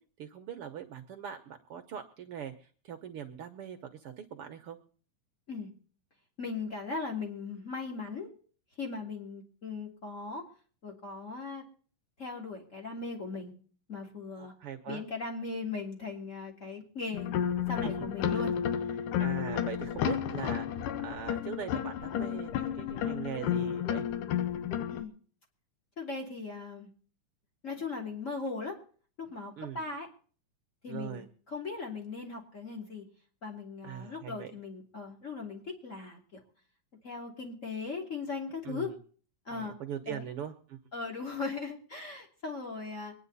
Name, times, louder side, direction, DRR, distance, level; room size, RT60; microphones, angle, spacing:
voice 1, 0.2-4.8 14.4-15.1 17.8-18.5 19.2-24.1 29.6-29.8 30.9-31.3 33.8-34.5 38.6-39.0 39.5-40.8, right 9 dB, 65° right, 6 dB, 1.4 m, -41 dB
voice 2, 6.4-8.3 8.8-10.4 10.8-11.6 12.2-13.5 13.9-14.5 14.9-17.3 17.7-18.5 24.9-25.1 26.0-26.9 27.6-28.8 29.2-30.1 30.8-31.2 31.5-33.0 33.4-36.4 37.0-38.9 39.5-39.8 40.1-40.3 40.9-43.1, left 4 dB, 25° left, 1 dB, 2.9 m, -38 dB
sound 1, 17.1-25.0, left 9 dB, 85° left, 2.7 m, -32 dB
24.0 x 10.5 x 4.1 m, 0.42 s
omnidirectional pair, 3.7 m